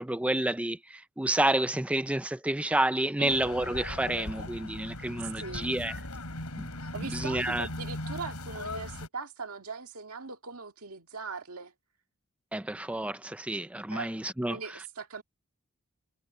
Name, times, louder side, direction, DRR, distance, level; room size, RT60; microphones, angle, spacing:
voice 1, 0.0-5.9 6.6-6.7 7.1-7.7 12.5-14.6, right 1 dB, 5° right, 0.5 m, -29 dB
voice 2, 3.2-3.5 5.2-5.7 6.9-11.7 13.9-14.1 14.5-15.2, right 4 dB, 75° right, 2.0 m, -40 dB
sound 1, 3.3-9.1, left 1 dB, 90° left, 6.7 m, -38 dB
head